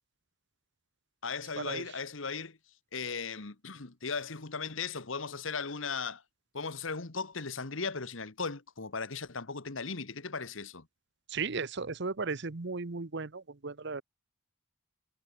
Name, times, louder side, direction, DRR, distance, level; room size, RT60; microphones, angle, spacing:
voice 1, 1.2-2.6 2.9-6.2 6.5-10.9, left 5 dB, 70° left, 1.5 m, -37 dB
voice 2, 11.3-14.0, right 4 dB, 60° right, 1.0 m, -35 dB
head